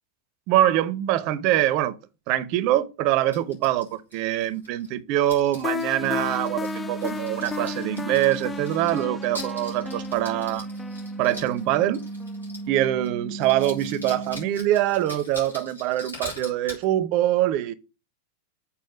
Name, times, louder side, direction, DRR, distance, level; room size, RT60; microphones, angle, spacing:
voice 1, 0.5-1.9 2.3-10.7 11.2-12.0 12.7-17.7, right 13 dB, 45° right, 0.7 m, -24 dB
sound 1, 3.3-4.9 5.2-12.8 13.0-13.1 13.4-16.8, left 1 dB, 85° left, 3.8 m, -42 dB
sound 2, 5.6-12.4, left 5 dB, 15° left, 0.4 m, -35 dB
sound 3, 6.0-14.6, right 2 dB, 30° left, 2.4 m, -36 dB
7.3 x 4.5 x 5.9 m
figure-of-eight pair, 90°, 0 cm